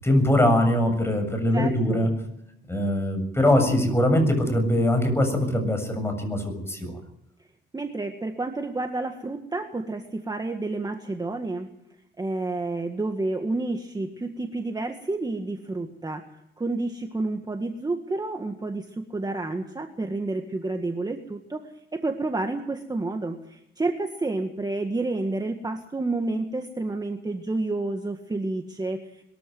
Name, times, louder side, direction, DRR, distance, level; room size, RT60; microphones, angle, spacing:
voice 1, 0.0-2.1 2.7-6.9, left 1 dB, 10° left, 6 dB, 7.3 m, -22 dB
voice 2, 1.5-2.1 7.7-11.7 12.2-16.2 16.6-29.2, right 2 dB, 20° right, 5 dB, 1.8 m, -30 dB
22.0 x 14.0 x 9.3 m, 0.83 s
cardioid pair, 90°, 20 cm